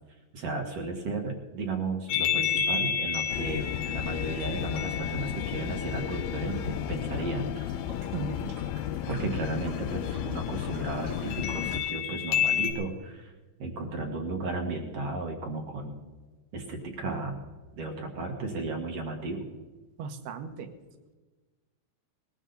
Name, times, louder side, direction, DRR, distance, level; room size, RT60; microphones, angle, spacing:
voice 1, 0.3-7.5 9.1-13.3 13.6-16.0 16.5-17.4 17.7-19.5, right 3 dB, 55° right, 3 dB, 1.7 m, -34 dB
sound 1, 2.1-6.7 11.3-12.7, left 8 dB, 70° left, 3.4 m, -30 dB
sound 2, 3.3-11.8, left 11 dB, 90° left, 2.1 m, -34 dB
sound 3, 5.9-11.9, right 2 dB, 90° right, 6.1 m, -51 dB
voice 2, 8.1-8.6 20.0-20.7, right 5 dB, 75° right, 8 dB, 3.1 m, -36 dB
20.0 x 14.5 x 4.0 m, 1.3 s
omnidirectional pair, 4.9 m